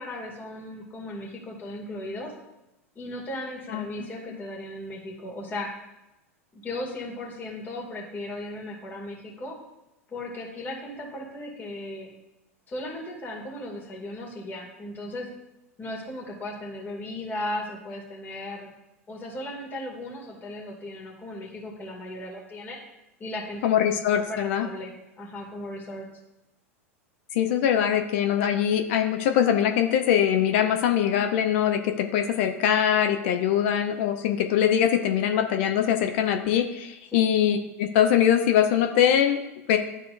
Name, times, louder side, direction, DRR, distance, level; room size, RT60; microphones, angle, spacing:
voice 1, 0.0-2.3 3.0-5.7 6.5-9.6 10.1-12.1 12.7-15.3 15.8-18.7 19.1-22.8 23.2-23.6 24.2-26.0 37.1-37.2, left 1 dB, 25° left, -2 dB, 2.3 m, -36 dB
voice 2, 23.6-24.7 27.3-39.8, left 9 dB, 55° left, 6 dB, 0.7 m, -22 dB
12.0 x 4.6 x 2.6 m, 0.93 s
figure-of-eight pair, 90°, 8 cm